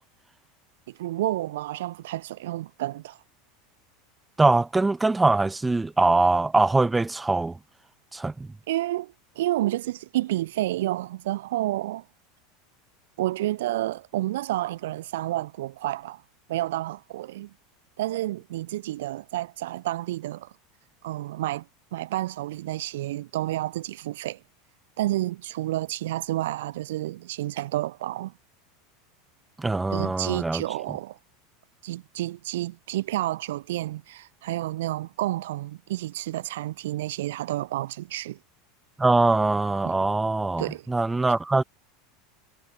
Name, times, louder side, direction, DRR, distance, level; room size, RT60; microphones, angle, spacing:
voice 1, 0.9-3.2 8.7-12.0 13.2-16.2 16.5-17.5 18.0-20.5 21.0-21.6 21.9-24.4 25.0-28.3 29.9-31.2 31.8-38.4 39.8-39.9 40.6-40.9, right 15 dB, 85° right, 3.0 m, -30 dB
voice 2, 4.4-7.6 8.1-8.5 29.6-30.6 39.0-41.6, right 3 dB, 10° right, 1.3 m, -22 dB
supercardioid pair, 125°, 0 cm